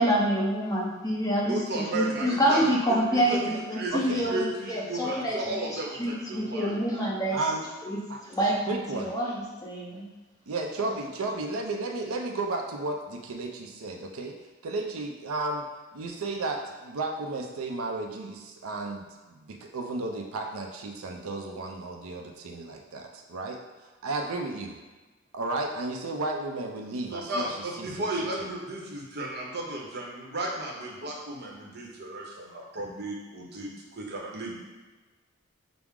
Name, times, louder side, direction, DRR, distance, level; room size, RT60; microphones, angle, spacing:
voice 1, 0.0-1.6 1.9-5.6 6.0-7.4 7.8-8.0 8.3-10.0, equal, 15° left, -5 dB, 0.8 m, -27 dB
voice 2, 1.5-2.6 2.9-6.7 27.1-34.6, right 2 dB, 50° right, -2 dB, 0.8 m, -34 dB
voice 3, 3.9-4.3 7.3-7.6 8.1-8.2 8.7-9.1 10.5-14.4 14.6-15.7 15.9-19.0 19.3-23.6 24.0-24.8 25.3-27.5 27.8-28.0, right 2 dB, 90° right, 2 dB, 0.5 m, -33 dB
5.9 x 2.0 x 3.6 m, 1.2 s
head